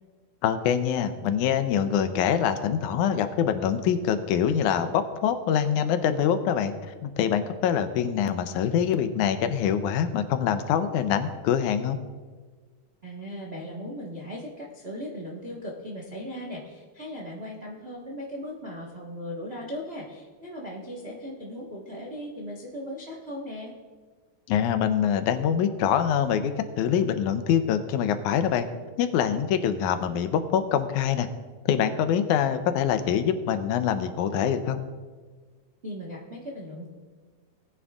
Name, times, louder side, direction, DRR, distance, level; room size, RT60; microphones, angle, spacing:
voice 1, 0.4-12.0 24.5-28.7 29.0-31.3 31.7-34.8, left 8 dB, 80° left, 9 dB, 2.0 m, -24 dB
voice 2, 13.0-23.7 35.8-36.9, equal, 75° right, -3 dB, 0.5 m, -38 dB
19.0 x 9.7 x 2.4 m, 1.4 s
omnidirectional pair, 3.6 m